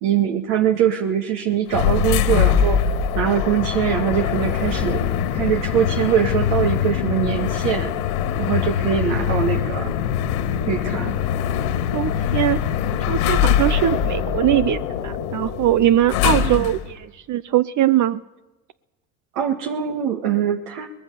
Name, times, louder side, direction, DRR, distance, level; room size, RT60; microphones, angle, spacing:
voice 1, 0.0-2.8 3.1-5.0 5.3-7.9 8.4-9.9 10.7-11.2 16.2-16.7 19.4-20.9, right 9 dB, 65° right, 4 dB, 2.0 m, -22 dB
sound 1, 1.7-16.9, left 9 dB, 80° left, 2.8 m, -22 dB
voice 2, 11.9-12.6 13.1-18.2, right 12 dB, 45° right, 14 dB, 0.7 m, -21 dB
23.5 x 20.0 x 6.9 m, 1.1 s
hypercardioid pair, 75°, 43 cm